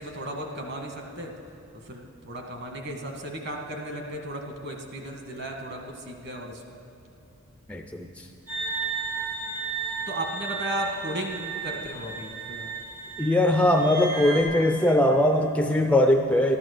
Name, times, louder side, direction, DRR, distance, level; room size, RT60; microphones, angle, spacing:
voice 1, 0.0-1.3 1.9-6.8 10.1-12.7, right 1 dB, 50° right, 2 dB, 1.5 m, -35 dB
voice 2, 7.7-8.3 13.2-16.6, left 1 dB, 5° left, 5 dB, 0.4 m, -21 dB
sound 1, 8.5-14.4, right 5 dB, 85° right, 3.7 m, -34 dB
13.5 x 12.0 x 6.6 m, 2.7 s
head